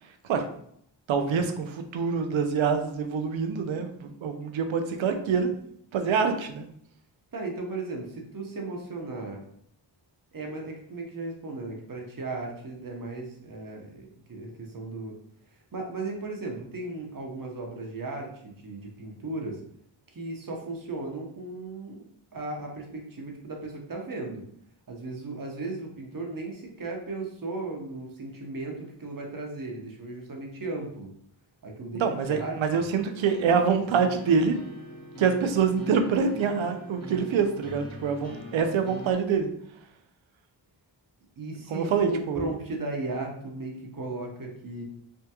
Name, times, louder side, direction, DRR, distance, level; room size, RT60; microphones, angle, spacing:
voice 1, 1.1-5.5 5.9-6.7 32.0-34.6 35.2-39.5 41.7-42.5, right 6 dB, 85° right, 7 dB, 0.5 m, -25 dB
voice 2, 7.3-9.4 10.3-15.2 15.5-19.6 20.1-24.4 24.9-31.1 31.6-32.8 41.4-44.8, right 2 dB, 45° right, 1 dB, 0.9 m, -36 dB
sound 1, 33.0-39.1, left 1 dB, 35° left, 1.1 m, -42 dB
3.5 x 2.2 x 2.8 m, 0.67 s
cardioid pair, 50°, 45 cm